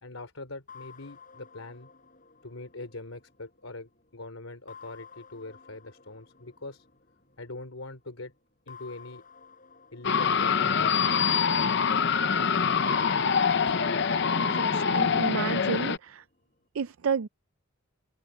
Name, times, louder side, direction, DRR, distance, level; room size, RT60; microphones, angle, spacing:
voice 1, 0.0-1.9 2.4-6.8 7.4-8.3 8.7-9.2 9.9-11.1, left 2 dB, 80° left, 3.1 m, -42 dB
sound 1, 0.7-4.0 4.7-7.6 8.7-11.8 12.7-15.8, left 6 dB, 40° left, 6.0 m, -53 dB
sound 2, 10.0-16.0, left 6 dB, 55° left, 0.7 m, -25 dB
voice 2, 14.4-16.2 16.7-17.3, right 6 dB, 75° right, 0.5 m, -31 dB
head